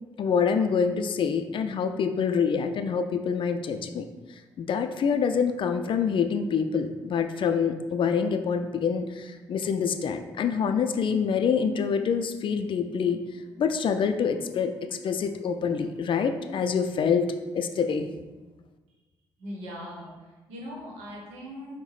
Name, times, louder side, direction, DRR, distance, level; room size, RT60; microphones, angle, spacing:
voice 1, 0.2-4.1 4.6-13.2 13.6-14.7 15.0-18.1, left 6 dB, 55° left, 8 dB, 0.3 m, -26 dB
voice 2, 19.4-21.8, equal, 85° right, -2 dB, 0.8 m, -40 dB
5.3 x 2.1 x 3.1 m, 1.2 s
supercardioid pair, 50°, 10 cm